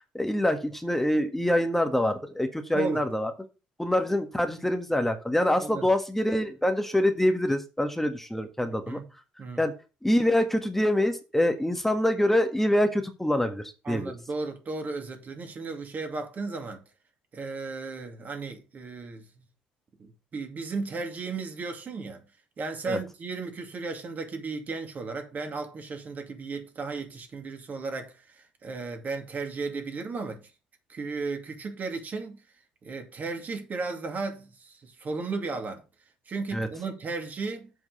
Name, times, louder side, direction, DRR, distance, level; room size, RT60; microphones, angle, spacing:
voice 1, 0.1-3.3 3.8-9.0 9.6-9.7 10.0-14.1 22.9-23.0 36.5-36.7, left 1 dB, 5° left, 1.6 m, -25 dB
voice 2, 2.7-3.0 5.6-5.9 8.9-9.1 9.4-9.6 13.8-16.8 17.3-19.4 20.0-22.2 22.6-30.5 30.9-32.4 32.8-35.8 36.3-37.7, right 4 dB, 45° right, 2.4 m, -35 dB
7.8 x 4.6 x 6.9 m
hypercardioid pair, 55°, 4 cm